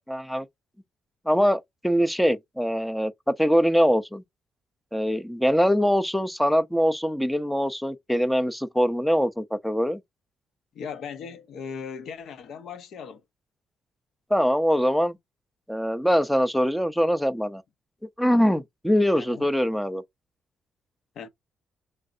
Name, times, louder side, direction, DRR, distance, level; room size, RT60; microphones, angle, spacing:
voice 1, 0.1-0.5 1.3-4.2 4.9-10.0 14.3-15.2 15.7-17.6 18.2-20.0, equal, 5° left, 0.5 m, -23 dB
voice 2, 10.7-13.2 19.2-19.5 21.2-21.3, left 6 dB, 70° left, 0.6 m, -38 dB
3.2 x 2.5 x 2.5 m
cardioid pair, 90°, 0 cm